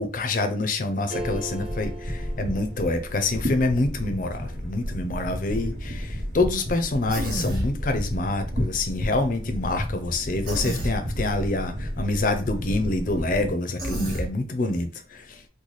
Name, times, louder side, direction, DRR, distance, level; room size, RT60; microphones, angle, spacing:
voice 1, 0.0-15.4, left 2 dB, 45° left, 0.5 m, -26 dB
sound 1, 1.1-3.4, right 1 dB, 35° right, 0.5 m, -37 dB
sound 2, 1.1-13.5, equal, 70° right, 1.0 m, -32 dB
Human voice, 7.1-7.7 10.4-10.9 13.8-14.3, equal, 50° right, 1.4 m, -29 dB
4.0 x 2.2 x 3.1 m
head